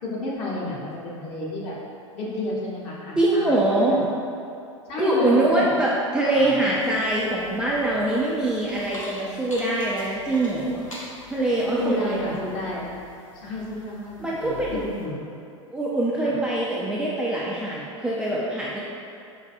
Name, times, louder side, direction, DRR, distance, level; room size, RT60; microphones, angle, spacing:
voice 1, 0.0-1.7 2.1-4.0 4.9-5.7 6.2-6.7 11.8-12.9 13.3-15.2 16.2-16.3, left 2 dB, 40° left, -5 dB, 1.0 m, -31 dB
voice 2, 3.2-4.0 5.0-10.8 11.3-12.3 14.2-14.8 15.7-18.8, right 1 dB, 5° right, -7 dB, 0.3 m, -23 dB
sound 1, 6.7-15.1, left 2 dB, 90° left, 0.7 m, -44 dB
5.0 x 2.6 x 2.5 m, 2.5 s
figure-of-eight pair, 90°, 17 cm